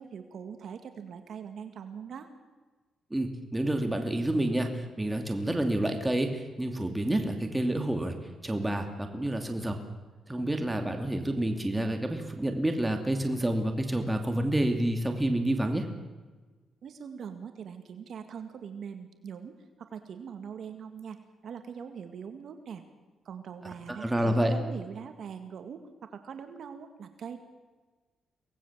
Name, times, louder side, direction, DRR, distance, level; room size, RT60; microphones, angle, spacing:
voice 1, 0.0-2.3 16.8-21.2 21.4-22.8 23.3-27.4, right 7 dB, 65° right, 7 dB, 1.9 m, -42 dB
voice 2, 3.1-8.2 8.4-9.8 10.3-15.9 23.9-24.5, right 1 dB, 10° right, 4 dB, 2.7 m, -29 dB
24.5 x 18.5 x 7.5 m, 1.3 s
cardioid pair, 90°, 0 cm